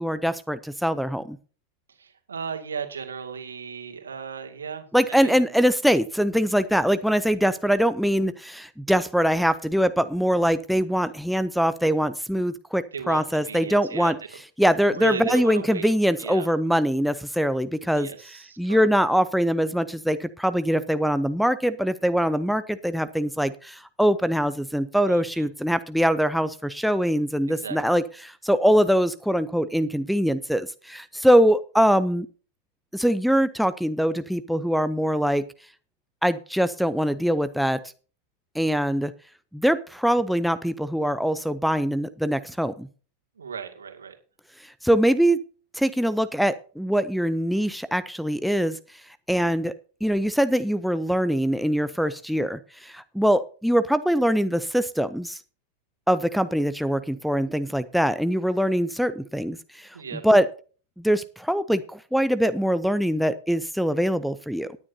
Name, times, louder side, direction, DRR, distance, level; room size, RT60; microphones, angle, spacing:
voice 1, 0.0-1.4 4.9-14.2 14.6-18.1 18.6-32.3 32.9-35.5 36.2-37.8 38.5-39.1 39.5-42.9 44.6-45.4 45.7-48.8 49.3-49.7 50.0-55.4 56.1-60.5 61.0-64.8, equal, ahead, 12 dB, 0.6 m, -23 dB
voice 2, 1.9-5.4 12.9-14.1 14.9-15.9 16.2-16.5 18.0-18.8 25.1-25.5 27.5-27.8 43.4-44.2 59.9-60.2, right 6 dB, 70° right, 5 dB, 2.2 m, -35 dB
18.0 x 9.8 x 2.8 m, 0.37 s
figure-of-eight pair, 90°, 0 cm